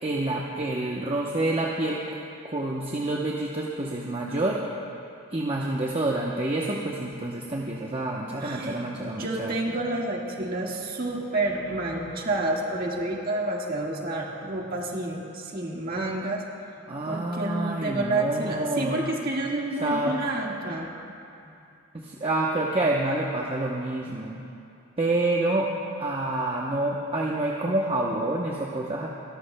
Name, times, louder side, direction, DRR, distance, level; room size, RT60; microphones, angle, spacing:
voice 1, 0.0-2.0 2.4-4.6 5.3-9.5 16.9-19.0 19.8-20.2 22.0-24.4 25.0-25.7 26.0-29.1, right 2 dB, 25° right, -3 dB, 0.8 m, -27 dB
voice 2, 8.4-8.9 9.2-16.4 17.1-20.9, right 2 dB, 40° right, -2 dB, 1.7 m, -29 dB
29.0 x 13.0 x 2.2 m, 2.6 s
head